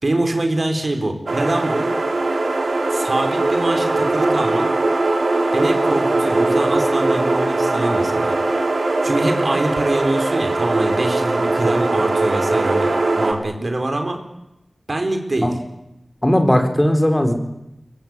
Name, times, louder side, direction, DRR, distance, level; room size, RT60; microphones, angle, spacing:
voice 1, 0.0-1.9 2.9-4.7 5.5-8.3 9.0-14.2 14.9-15.5, right 2 dB, 50° right, 5 dB, 4.5 m, -24 dB
sound 1, 1.3-13.3, right 2 dB, 75° right, 4.0 m, -20 dB
voice 2, 16.2-17.3, equal, 20° left, 6 dB, 4.1 m, -17 dB
24.5 x 21.5 x 9.7 m, 0.87 s
wide cardioid pair, 70°, 0 cm